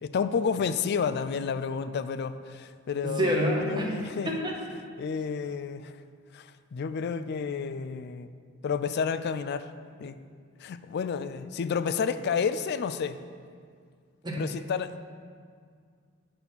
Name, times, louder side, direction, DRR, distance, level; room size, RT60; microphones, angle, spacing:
voice 1, 0.0-4.3 5.0-6.0 6.3-8.3 8.6-9.7 10.0-10.2 10.6-13.2 14.4-15.0, left 6 dB, 55° left, 12 dB, 0.3 m, -30 dB
voice 2, 3.0-3.9 4.3-4.5 14.2-14.4, equal, 20° right, -2 dB, 1.2 m, -27 dB
8.6 x 4.2 x 5.7 m, 2.1 s
head